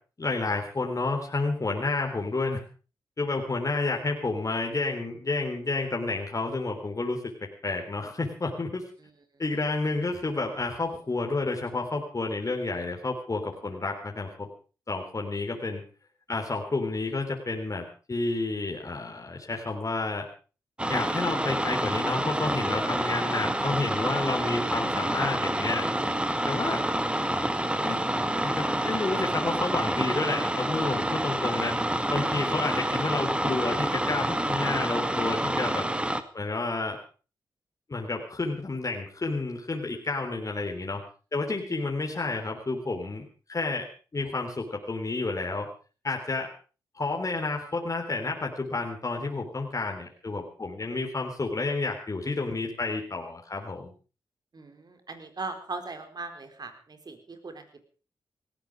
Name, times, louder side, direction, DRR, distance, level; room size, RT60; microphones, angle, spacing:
voice 1, 0.2-2.6 3.2-7.2 7.6-8.8 9.4-14.5 14.9-15.8 16.3-20.2 20.9-25.9 26.5-26.8 27.8-28.0 28.4-31.7 32.1-35.9 36.3-37.0 37.9-41.0 41.3-43.9 44.1-45.7 46.0-46.5 47.0-53.9, left 3 dB, 40° left, 1 dB, 3.7 m, -30 dB
sound 1, 20.8-36.2, right 1 dB, 10° right, 2.0 m, -28 dB
voice 2, 54.5-57.8, right 3 dB, 50° right, 7 dB, 4.3 m, -39 dB
18.5 x 15.0 x 5.0 m, 0.37 s
supercardioid pair, 45°, 9 cm